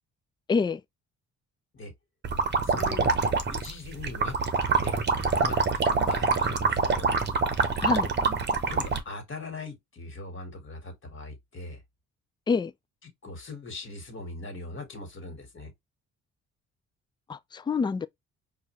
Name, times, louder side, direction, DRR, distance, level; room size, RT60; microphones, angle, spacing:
voice 1, 0.5-0.8 7.8-8.1 12.5-12.7 17.3-18.1, left 5 dB, 15° left, 0.3 m, -26 dB
sound 1, 2.2-9.0, right 4 dB, 35° right, 0.9 m, -25 dB
voice 2, 2.6-4.3 4.8-4.9 5.4-7.2 8.7-11.8 13.2-15.7, left 3 dB, 40° left, 1.9 m, -40 dB
4.7 x 2.5 x 3.1 m
cardioid pair, 90°, 30 cm